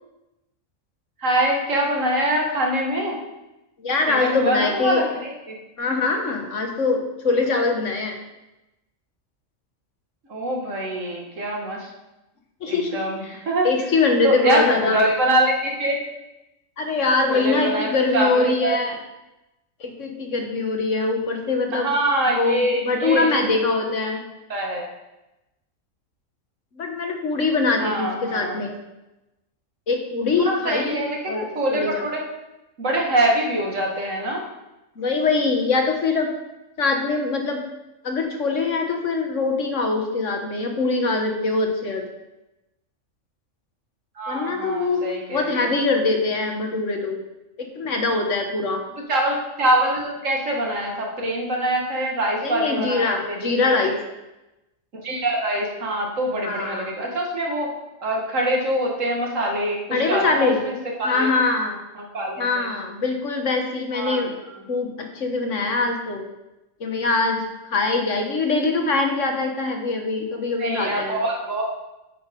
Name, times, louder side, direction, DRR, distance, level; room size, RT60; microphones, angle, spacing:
voice 1, 1.2-3.2 4.1-5.6 10.3-11.9 12.7-13.7 14.2-16.0 17.3-18.7 21.7-23.3 23.8-23.9 24.5-24.9 27.7-28.6 30.4-32.3 32.8-34.4 44.2-45.7 49.1-54.0 55.0-57.7 58.0-61.3 62.0-62.7 63.9-64.6 70.6-71.6, right 1 dB, 75° right, -1 dB, 2.3 m, -24 dB
voice 2, 3.8-5.0 5.8-8.2 12.6-13.4 13.6-15.0 16.8-19.0 19.8-21.9 22.3-24.2 26.8-28.7 29.9-32.0 35.0-36.3 36.8-37.6 38.0-42.1 44.3-45.0 45.3-47.2 47.6-48.8 52.4-54.0 56.4-56.9 59.9-60.6 61.0-61.8 62.4-64.3 64.7-66.2 66.8-67.4 67.7-71.2, left 3 dB, 70° left, 3 dB, 1.7 m, -23 dB
8.6 x 7.0 x 5.3 m, 0.97 s
omnidirectional pair, 1.3 m